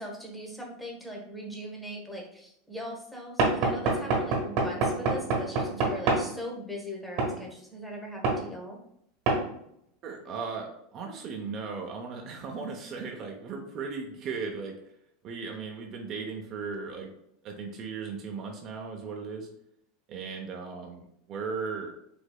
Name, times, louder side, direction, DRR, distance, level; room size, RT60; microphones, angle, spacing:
voice 1, 0.0-8.8, equal, 5° left, -1 dB, 1.1 m, -40 dB
Knock / Wood, 3.4-6.3 7.2-7.4 8.2-8.4 9.3-9.4, right 3 dB, 60° right, 1.1 m, -26 dB
voice 2, 10.0-14.8 15.2-17.1 17.4-19.5 20.1-21.9, right 5 dB, 45° right, 2 dB, 0.6 m, -37 dB
4.9 x 2.6 x 2.2 m, 0.75 s
supercardioid pair, 110°, 0 cm